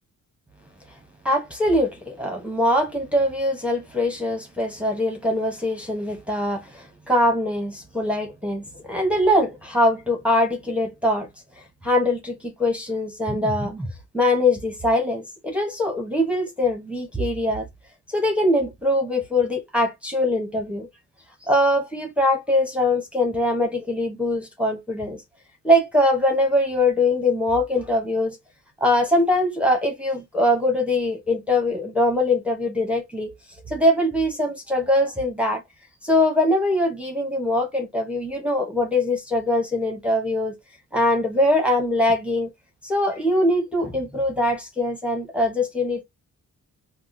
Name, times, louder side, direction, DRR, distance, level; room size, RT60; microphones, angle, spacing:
voice 1, 1.2-11.3 11.8-13.9 14.1-17.6 18.1-20.9 21.4-25.2 25.6-28.4 28.8-33.3 33.7-35.6 36.0-40.6 40.9-42.5 42.8-46.0, left 1 dB, 5° right, 0.7 m, -22 dB
3.6 x 2.3 x 2.5 m
cardioid pair, 100°, 35 cm